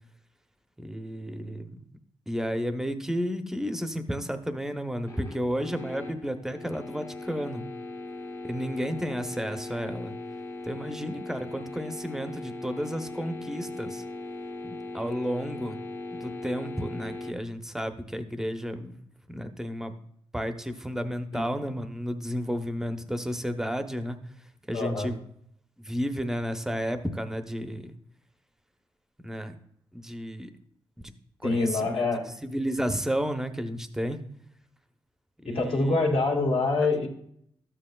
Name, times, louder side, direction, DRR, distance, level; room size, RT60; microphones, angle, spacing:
voice 1, 0.8-1.9 2.3-7.6 8.5-10.1 10.6-14.0 14.6-15.8 16.1-19.9 20.3-24.2 24.7-25.2 25.8-28.0 29.2-29.5 29.9-30.5 31.4-34.2 35.4-36.0, equal, 5° right, 8 dB, 0.7 m, -32 dB
sound 1, 5.1-17.3, left 2 dB, 25° left, 0.9 m, -39 dB
voice 2, 24.7-25.1 31.4-32.2 35.5-37.1, left 3 dB, 60° left, 1 dB, 2.0 m, -25 dB
12.5 x 7.6 x 2.3 m, 0.68 s
cardioid pair, 105°, 10 cm